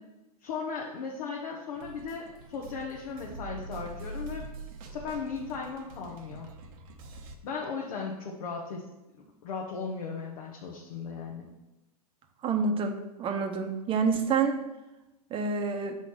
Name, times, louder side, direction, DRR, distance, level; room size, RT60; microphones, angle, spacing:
voice 1, 0.4-4.5 4.8-6.5 7.4-8.8 9.1-11.5, left 5 dB, 65° left, -2 dB, 1.2 m, -37 dB
sound 1, 1.8-7.4, right 2 dB, 60° right, 1.0 m, -44 dB
voice 2, 12.4-14.6 15.3-16.0, right 5 dB, 25° right, 5 dB, 0.9 m, -28 dB
6.6 x 4.0 x 5.9 m, 0.99 s
hypercardioid pair, 110°, 20 cm